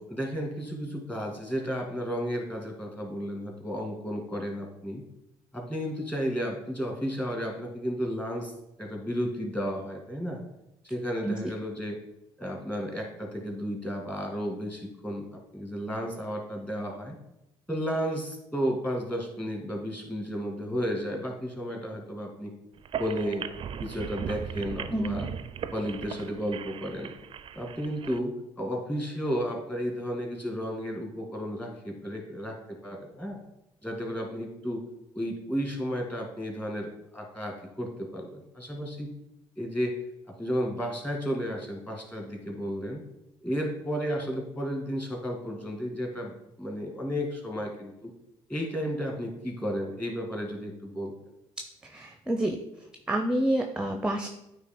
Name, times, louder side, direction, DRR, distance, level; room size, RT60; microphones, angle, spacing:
voice 1, 0.1-5.0 5.5-8.5 8.8-10.4 10.8-12.0 12.4-17.2 17.7-22.5 23.0-23.5 23.8-25.3 25.7-27.1 27.5-33.4 33.8-34.8 35.1-39.1 39.6-40.0 40.3-43.0 43.4-48.1 48.5-51.1, equal, 10° left, 1 dB, 2.0 m, -33 dB
sound 1, 22.8-28.2, right 8 dB, 45° right, 0.4 m, -38 dB
voice 2, 24.9-25.3 51.8-52.6 53.1-54.3, right 1 dB, 5° right, 4 dB, 0.6 m, -28 dB
9.0 x 3.0 x 4.4 m, 0.88 s
hypercardioid pair, 65°, 13 cm